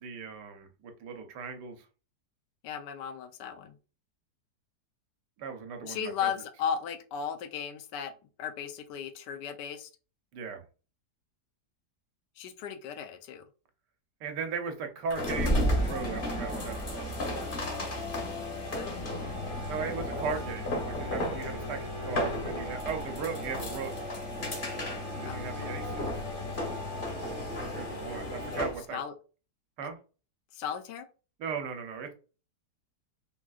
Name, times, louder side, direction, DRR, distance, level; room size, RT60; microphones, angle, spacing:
voice 1, 0.0-1.9 5.4-6.3 10.3-10.6 14.2-17.5 19.7-23.9 25.1-26.2 27.7-29.0 29.8-30.0 31.4-32.1, right 5 dB, 80° right, 5 dB, 1.3 m, -37 dB
voice 2, 2.6-3.8 5.8-8.1 8.4-9.9 12.4-13.4 18.7-19.0 25.2-25.4 28.6-29.1 30.5-31.1, left 8 dB, 85° left, 8 dB, 1.2 m, -36 dB
sound 1, 15.1-28.8, left 1 dB, 40° left, 0.8 m, -33 dB
3.8 x 2.4 x 2.3 m, 0.35 s
omnidirectional pair, 1.8 m